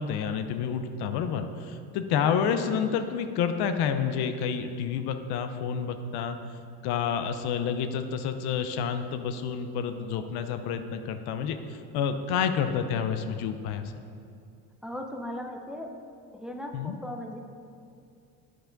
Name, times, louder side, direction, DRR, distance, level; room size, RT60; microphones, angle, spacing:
voice 1, 0.0-6.4 6.8-13.9 16.7-17.0, left 7 dB, 70° left, 8 dB, 0.6 m, -29 dB
voice 2, 14.8-15.9 16.3-17.4, left 1 dB, ahead, 2 dB, 0.6 m, -37 dB
8.8 x 4.8 x 3.9 m, 2.4 s
supercardioid pair, 95°, 40 cm